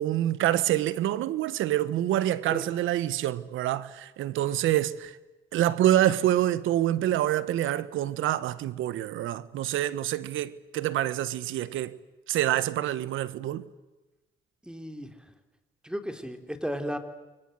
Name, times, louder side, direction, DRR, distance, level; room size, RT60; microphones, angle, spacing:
voice 1, 0.0-5.2 5.5-12.0 12.3-13.7, right 13 dB, 85° right, 1.3 m, -26 dB
voice 2, 14.6-15.1 15.8-17.0, equal, 5° right, 3.5 m, -34 dB
29.5 x 24.5 x 8.0 m
cardioid pair, 90°, 20 cm